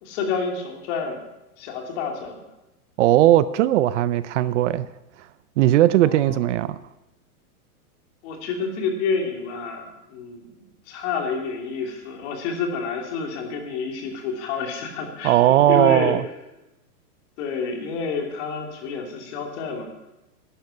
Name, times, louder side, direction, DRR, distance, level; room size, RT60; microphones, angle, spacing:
voice 1, 0.0-1.2 1.6-2.4 6.1-6.3 8.2-10.4 10.9-16.2 17.4-19.9, left 5 dB, 50° left, 2 dB, 3.0 m, -29 dB
voice 2, 3.0-4.9 5.6-6.8 15.2-16.2, right 13 dB, 55° right, 16 dB, 0.6 m, -18 dB
11.5 x 10.5 x 7.1 m, 0.96 s
supercardioid pair, 150°, 45 cm